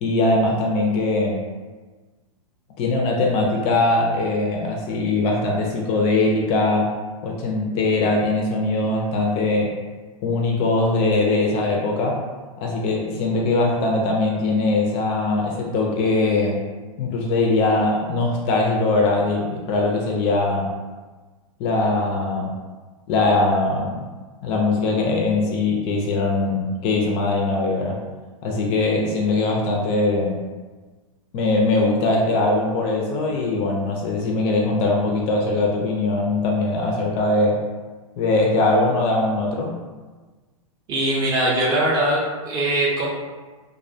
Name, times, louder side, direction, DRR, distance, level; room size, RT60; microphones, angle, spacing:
voice 1, 0.0-1.4 2.8-6.9 7.2-9.7 10.2-12.2 12.6-16.6 17.0-20.7 21.6-22.5 23.1-24.0 24.4-28.0 28.4-30.4 31.3-37.6 38.2-39.8, left 2 dB, 35° left, -1 dB, 0.4 m, -21 dB
voice 2, 40.9-43.1, right 1 dB, 20° right, -5 dB, 0.5 m, -21 dB
2.4 x 2.1 x 2.6 m, 1.3 s
hypercardioid pair, 135°, 18 cm